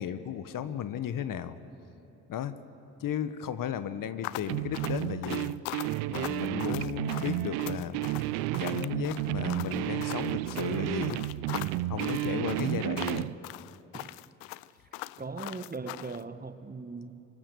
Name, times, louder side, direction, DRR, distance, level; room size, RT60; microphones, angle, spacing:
voice 1, 0.0-1.6 2.3-2.6 3.0-5.5 6.1-8.0 8.6-11.2 11.9-13.3, left 9 dB, 60° left, 12 dB, 1.2 m, -34 dB
sound 1, 4.2-16.2, left 19 dB, 85° left, 0.5 m, -41 dB
sound 2, 4.5-13.3, right 17 dB, 80° right, 0.6 m, -32 dB
voice 2, 6.5-7.0 12.2-12.6 13.9-14.2 15.2-17.2, right 4 dB, 25° right, 11 dB, 1.4 m, -40 dB
24.5 x 24.0 x 6.9 m, 2.9 s
hypercardioid pair, 45°, 37 cm